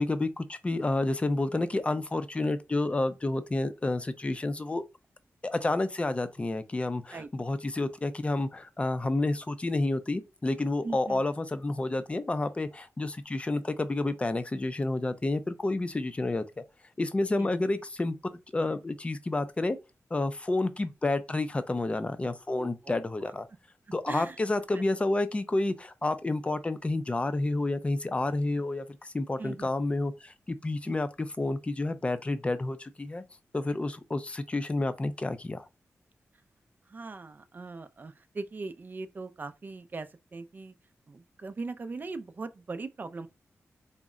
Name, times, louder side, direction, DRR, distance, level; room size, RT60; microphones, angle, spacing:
voice 1, 0.0-4.8 5.4-16.6 17.0-18.2 18.5-19.8 20.1-23.5 23.9-33.2 33.5-35.7, left 2 dB, 25° left, 0.4 m, -30 dB
voice 2, 10.8-11.2 17.4-17.5 22.5-22.9 24.1-24.4 24.7-24.8 29.4-29.7 30.8-31.0 36.9-40.7 41.1-43.3, right 3 dB, 35° right, 0.4 m, -40 dB
3.9 x 2.1 x 3.6 m
wide cardioid pair, 115°, 5 cm